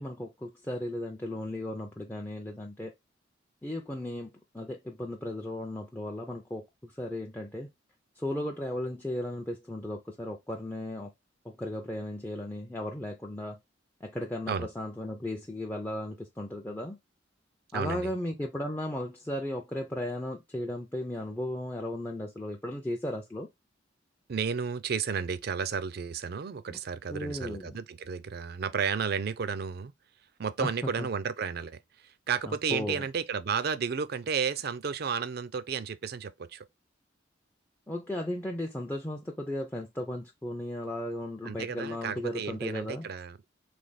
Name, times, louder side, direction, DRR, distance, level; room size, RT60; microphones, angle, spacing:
voice 1, 0.0-2.9 3.6-7.7 8.2-11.1 11.4-13.6 14.0-17.0 17.7-23.5 27.1-27.8 30.6-30.7 31.0-31.1 32.5-33.0 37.9-43.1, left 1 dB, 10° left, 0.5 m, -35 dB
voice 2, 17.7-18.1 24.3-29.9 30.4-36.7 41.4-43.4, right 6 dB, 55° right, 0.4 m, -32 dB
3.3 x 3.3 x 4.0 m
head